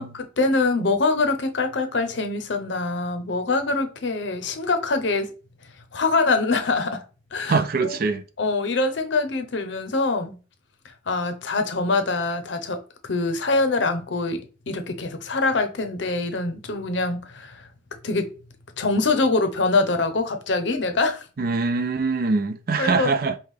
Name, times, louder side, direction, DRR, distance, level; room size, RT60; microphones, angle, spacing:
voice 1, 0.0-5.3 5.9-7.0 7.3-8.0 8.4-10.3 11.1-12.8 13.0-14.4 14.7-17.7 18.0-18.3 18.8-21.2 22.8-23.1, left 3 dB, 70° left, 0.7 m, -24 dB
voice 2, 7.5-8.2 21.4-23.3, right 4 dB, 50° right, 0.4 m, -23 dB
5.4 x 2.3 x 3.2 m
head